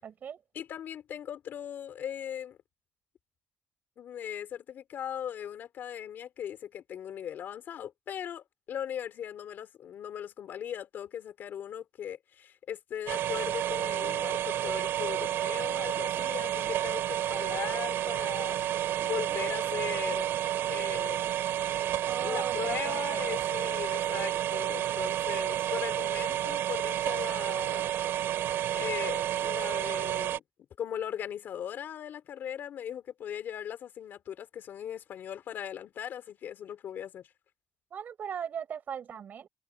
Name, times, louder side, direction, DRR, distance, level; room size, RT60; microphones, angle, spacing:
voice 1, 0.0-0.4 16.2-16.7 22.1-23.5 37.9-39.5, right 8 dB, 45° right, 5.9 m, -40 dB
voice 2, 0.5-2.6 4.0-18.6 19.0-20.3 20.7-21.2 22.2-27.9 28.7-30.4 30.8-37.3, left 9 dB, 60° left, 3.8 m, -39 dB
sound 1, 13.1-30.4, right 12 dB, 85° right, 3.3 m, -30 dB
cardioid pair, 160°, 4 cm